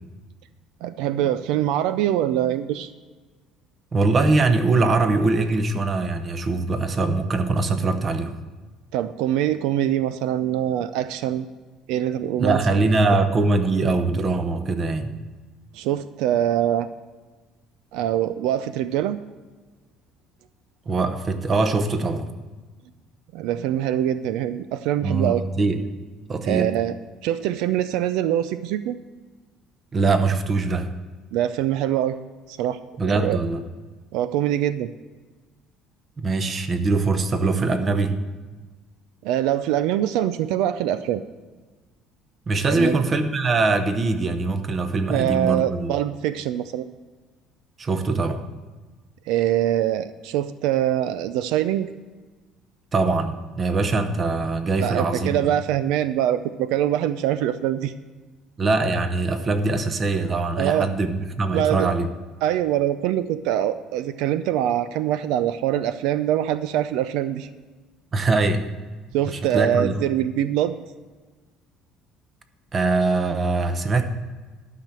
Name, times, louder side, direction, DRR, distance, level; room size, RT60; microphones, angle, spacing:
voice 1, 0.8-2.9 8.9-11.5 11.9-12.9 15.7-16.9 17.9-19.2 23.3-25.4 26.4-27.0 27.2-29.0 31.3-32.2 32.5-33.4 34.1-34.9 39.2-41.2 42.7-43.0 45.1-46.9 49.3-51.9 54.8-57.9 60.6-60.9 61.5-61.9 62.4-67.5 69.1-70.8, right 11 dB, 80° right, 13 dB, 0.4 m, -24 dB
voice 2, 3.9-8.3 12.4-15.1 20.9-22.3 25.0-25.8 26.3-26.7 29.9-30.9 33.0-33.6 36.2-38.2 42.5-45.9 47.8-48.4 52.9-55.5 58.6-62.1 68.1-68.7 69.3-70.0 72.7-74.0, right 3 dB, 30° right, 9 dB, 0.9 m, -22 dB
12.0 x 5.9 x 7.5 m, 1.3 s
cardioid pair, 140°, 0 cm